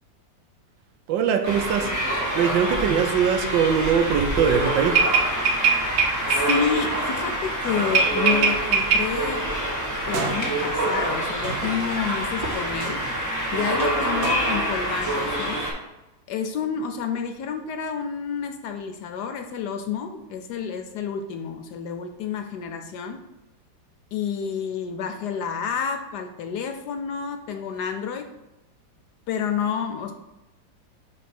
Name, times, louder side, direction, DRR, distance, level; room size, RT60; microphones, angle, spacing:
voice 1, 1.1-1.9 2.3-5.0, right 7 dB, 80° right, 1.4 m, -21 dB
sound 1, 1.4-15.7, right 1 dB, 10° right, 1.3 m, -26 dB
sound 2, 5.0-6.6 7.9-9.0 10.1-10.9 11.4-11.9 12.8-13.1 14.2-14.4, right 5 dB, 60° right, 1.0 m, -22 dB
voice 2, 5.9-9.4 10.1-13.0 13.5-15.6 16.3-23.2 24.1-28.3 29.3-30.1, left 7 dB, 70° left, 1.1 m, -29 dB
5.2 x 3.9 x 5.8 m
omnidirectional pair, 2.0 m